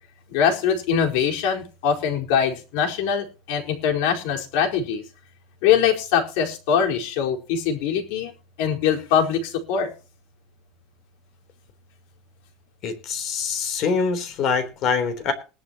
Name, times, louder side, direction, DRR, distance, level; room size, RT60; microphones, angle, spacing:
voice 1, 0.3-5.0 5.6-8.3 8.6-9.9, left 7 dB, 70° left, 1 dB, 4.5 m, -22 dB
voice 2, 12.8-15.3, left 5 dB, 45° left, 8 dB, 3.6 m, -24 dB
20.0 x 11.5 x 3.0 m, 0.33 s
cardioid pair, 150°, 0 cm